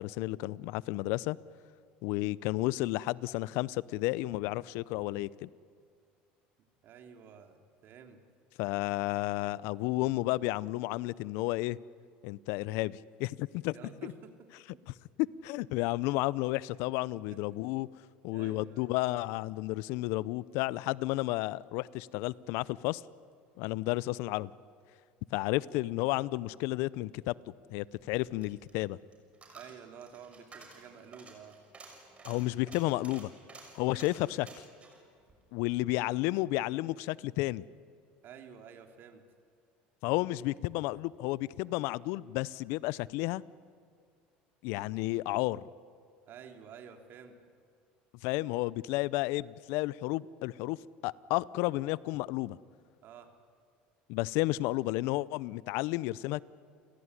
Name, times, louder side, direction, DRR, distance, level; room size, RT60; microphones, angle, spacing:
voice 1, 0.0-1.4 2.0-5.5 8.6-11.8 12.2-13.7 14.0-14.1 15.4-17.9 18.2-23.0 23.6-24.5 25.3-27.3 27.7-29.0 32.2-33.3 33.7-34.5 35.5-37.6 40.0-43.4 44.6-45.6 48.2-50.8 51.0-52.6 54.1-56.4, left 19 dB, 70° left, 0.6 m, -32 dB
voice 2, 6.8-8.2 13.7-14.5 14.7-14.8 16.7-16.8 17.3-17.4 18.3-18.9 29.5-31.6 38.2-39.2 46.3-47.4 53.0-53.3, right 7 dB, 55° right, 3.0 m, -51 dB
Coin (dropping), 27.9-36.3 36.7-36.8, right 3 dB, 30° right, 6.1 m, -53 dB
30.0 x 17.0 x 9.8 m
supercardioid pair, 95°, 4 cm